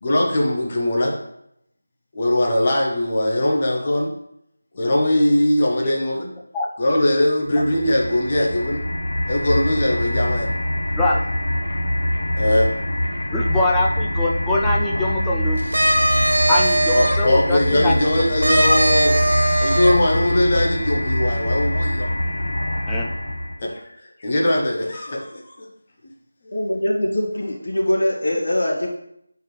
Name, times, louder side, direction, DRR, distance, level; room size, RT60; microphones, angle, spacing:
voice 1, 0.0-1.2 2.1-4.1 4.7-6.3 6.8-8.9 9.3-10.5 12.4-12.7 16.9-19.2 19.6-22.1 23.6-23.8 24.2-25.7 26.4-26.5, left 1 dB, 20° left, -2 dB, 0.8 m, -20 dB
sound 1, 7.5-23.6, left 1 dB, 85° left, 1.1 m, -24 dB
voice 2, 13.3-15.6 16.5-18.2 22.9-23.1, left 2 dB, 5° left, -3 dB, 0.3 m, -23 dB
sound 2, 15.6-17.2 18.4-19.9, right 1 dB, 70° right, 1.6 m, -19 dB
voice 3, 26.5-28.9, left 1 dB, 50° left, -5 dB, 2.1 m, -22 dB
9.2 x 4.6 x 3.2 m, 0.76 s
figure-of-eight pair, 180°, 0 cm